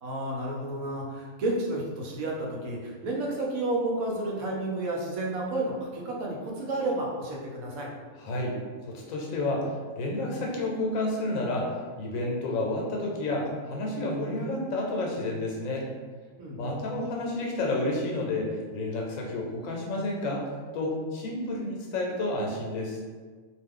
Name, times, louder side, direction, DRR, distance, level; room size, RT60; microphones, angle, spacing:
voice 1, 0.0-7.9 16.4-16.8, right 2 dB, 80° right, -2 dB, 1.1 m, -31 dB
voice 2, 8.2-8.6 8.8-15.9 16.6-23.0, left 2 dB, 75° left, -1 dB, 1.0 m, -30 dB
2.5 x 2.3 x 3.6 m, 1.5 s
omnidirectional pair, 1.5 m